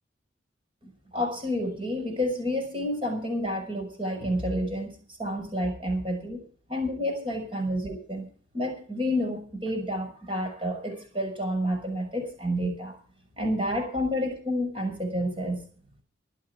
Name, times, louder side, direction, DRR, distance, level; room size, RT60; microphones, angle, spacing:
voice 1, 0.8-6.4 6.7-8.2 8.5-13.0 13.4-15.6, equal, 25° right, 4 dB, 5.9 m, -29 dB
23.5 x 8.9 x 4.8 m, 0.43 s
head